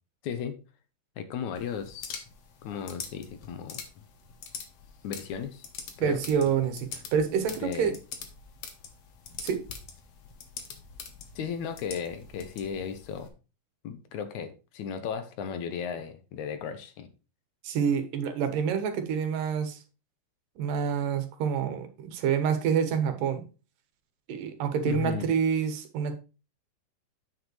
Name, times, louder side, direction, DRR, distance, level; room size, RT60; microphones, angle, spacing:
voice 1, 0.2-0.6 1.2-2.2 2.6-4.0 5.0-5.6 6.0-6.2 7.6-8.0 11.4-13.3 13.8-17.1 24.8-25.3, left 7 dB, 75° left, 2.1 m, -35 dB
sound 1, 1.6-13.3, left 6 dB, 55° left, 2.0 m, -44 dB
voice 2, 6.0-7.9 9.4-9.6 17.6-19.8 20.6-23.4 24.3-26.2, right 7 dB, 90° right, 2.9 m, -27 dB
9.4 x 7.4 x 3.2 m
omnidirectional pair, 3.8 m